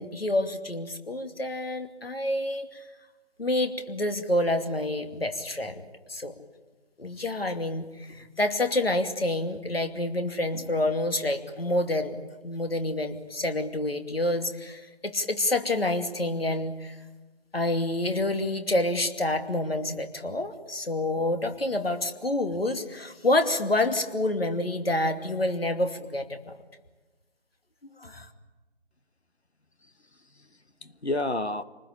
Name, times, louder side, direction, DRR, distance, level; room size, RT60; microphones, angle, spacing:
voice 1, 0.0-2.8 3.4-5.8 6.1-6.3 7.0-12.2 12.4-16.9 17.5-26.5 28.0-28.3, left 1 dB, 65° left, 7 dB, 2.7 m, -28 dB
voice 2, 29.8-31.6, left 2 dB, 85° left, 12 dB, 1.5 m, -32 dB
27.5 x 20.0 x 8.8 m, 1.2 s
figure-of-eight pair, 160°, 32 cm